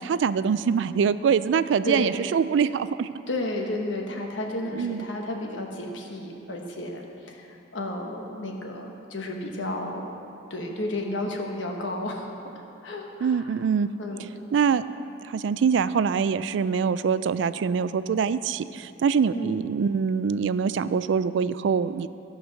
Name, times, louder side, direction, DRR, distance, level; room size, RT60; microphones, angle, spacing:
voice 1, 0.0-3.1 4.7-5.0 13.2-13.9 14.5-14.8 15.2-22.1, right 6 dB, 70° right, 14 dB, 0.3 m, -24 dB
voice 2, 1.8-2.2 3.3-7.5 7.7-10.1 10.5-12.3 12.5-13.4 14.0-14.3 19.3-19.6, left 1 dB, 80° left, 1 dB, 1.3 m, -32 dB
14.0 x 5.3 x 6.3 m, 2.8 s
head